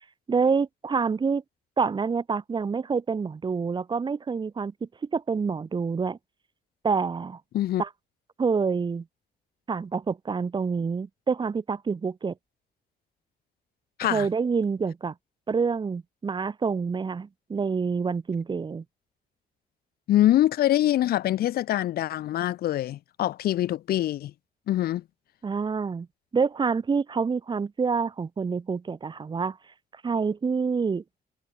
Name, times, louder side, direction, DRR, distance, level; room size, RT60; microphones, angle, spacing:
voice 1, 0.3-1.4 1.8-6.2 6.8-7.4 7.8-7.9 8.4-9.0 9.7-12.3 14.0-15.1 15.5-18.8 25.4-26.1 26.3-29.6 30.0-31.0, right 5 dB, 30° right, 2.8 m, -27 dB
voice 2, 20.1-24.3 24.7-25.0, left 13 dB, 85° left, 3.3 m, -24 dB
cardioid pair, 140°, 15 cm